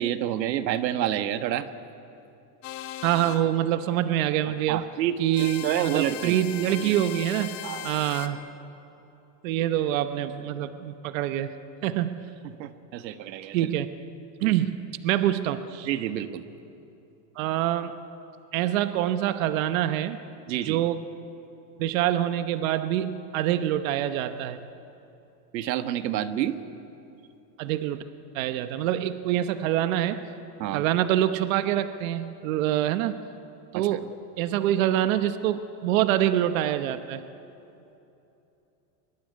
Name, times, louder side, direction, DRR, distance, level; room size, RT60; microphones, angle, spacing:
voice 1, 0.0-1.7 4.5-6.4 7.6-8.0 12.6-13.7 15.8-16.4 20.5-20.8 25.5-26.6 30.6-30.8 33.7-33.9, right 11 dB, 85° right, 10 dB, 1.6 m, -29 dB
sound 1, 2.6-3.4 5.3-8.3, left 12 dB, 35° left, 1.3 m, -38 dB
voice 2, 3.0-4.8 5.2-7.6 7.8-8.4 9.4-11.5 11.8-12.3 13.5-13.9 14.4-15.9 17.4-18.0 18.5-20.2 20.6-21.0 21.8-24.6 27.6-28.0 28.3-30.3 30.7-33.2 33.7-34.1 34.4-37.2, right 12 dB, 55° right, 10 dB, 1.1 m, -25 dB
23.0 x 23.0 x 9.7 m, 2.9 s
supercardioid pair, 165°, 50 cm